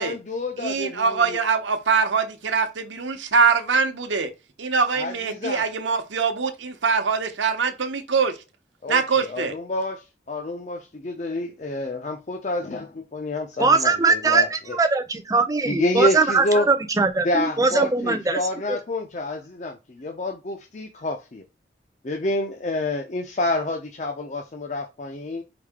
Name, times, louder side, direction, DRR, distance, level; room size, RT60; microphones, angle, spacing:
voice 1, 0.0-1.4 4.9-5.7 8.8-14.8 15.7-16.7 17.2-21.4 22.0-25.4, left 2 dB, 40° left, 0.5 m, -28 dB
voice 2, 0.6-4.3 4.6-8.3 8.9-9.5, right 5 dB, 85° right, 0.9 m, -23 dB
voice 3, 13.6-18.4 18.7-18.8, right 4 dB, 20° right, 0.5 m, -21 dB
4.9 x 2.7 x 3.5 m
head